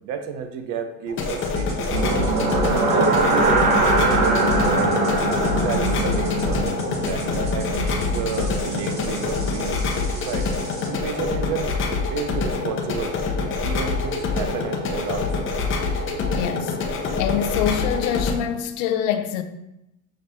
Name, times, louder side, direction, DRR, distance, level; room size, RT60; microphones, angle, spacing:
voice 1, 0.0-2.5 2.9-5.0 5.4-6.7 7.0-10.5 10.9-13.2 13.6-15.3, right 6 dB, 55° right, 0.7 m, -31 dB
sound 1, 1.1-18.3, left 4 dB, 30° left, 0.8 m, -25 dB
sound 2, 1.2-10.9, right 1 dB, 15° right, 1.6 m, -42 dB
sound 3, 1.9-9.9, right 2 dB, 75° right, 1.3 m, -23 dB
voice 2, 16.4-16.8 17.2-19.4, left 9 dB, 70° left, 0.6 m, -25 dB
6.4 x 3.1 x 2.7 m
supercardioid pair, 105°, 41 cm